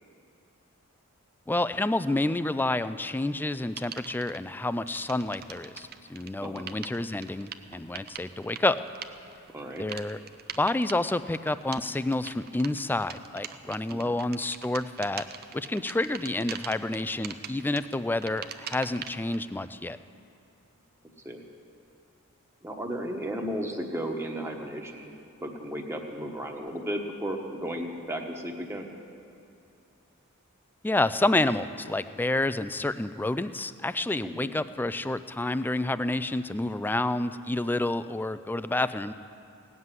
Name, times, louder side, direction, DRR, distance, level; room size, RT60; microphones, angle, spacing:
voice 1, 1.5-8.8 9.8-10.2 10.6-15.2 15.5-20.0 30.8-39.1, left 2 dB, 10° left, 13 dB, 0.3 m, -29 dB
sound 1, 3.8-4.4 4.8-19.4, right 8 dB, 45° right, 0.6 m, -43 dB
voice 2, 9.5-9.8 13.9-14.1 21.2-21.4 22.6-28.9 34.2-34.5, equal, 10° right, 1 dB, 1.2 m, -34 dB
17.0 x 7.5 x 9.7 m, 2.7 s
head